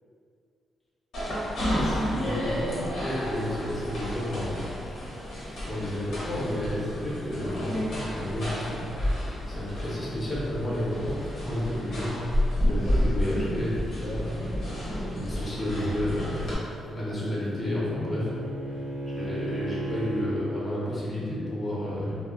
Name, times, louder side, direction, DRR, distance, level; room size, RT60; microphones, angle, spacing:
sound 1, 1.1-16.5, equal, 75° left, 0.8 m, -31 dB
voice 1, 1.7-4.6 5.6-8.8 9.5-12.2 12.7-14.8 15.1-18.3 19.1-22.2, left 1 dB, 20° left, -7 dB, 0.6 m, -31 dB
sound 2, 3.3-17.6, left 1 dB, 90° left, 0.4 m, -49 dB
Bowed string instrument, 16.6-20.4, right 1 dB, 60° right, 0.5 m, -35 dB
2.1 x 2.1 x 3.4 m, 2.4 s
cardioid pair, 125°, 0 cm